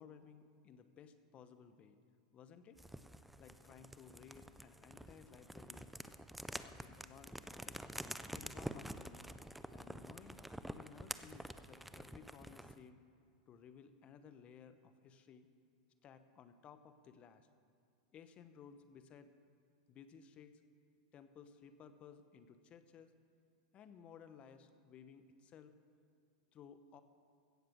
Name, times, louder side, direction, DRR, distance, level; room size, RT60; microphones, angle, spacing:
voice 1, 0.0-2.0 2.3-2.8 3.4-5.9 6.5-7.3 7.6-7.8 8.3-9.3 9.7-13.0 13.5-15.5 16.0-17.5 18.1-19.3 19.9-20.6 21.1-23.2 23.7-25.7 26.5-27.0, left 7 dB, 35° left, 10 dB, 0.9 m, -58 dB
sound 1, 2.8-12.8, right 1 dB, ahead, 0.4 m, -48 dB
16.0 x 6.7 x 6.2 m, 2.3 s
hypercardioid pair, 115°, 4 cm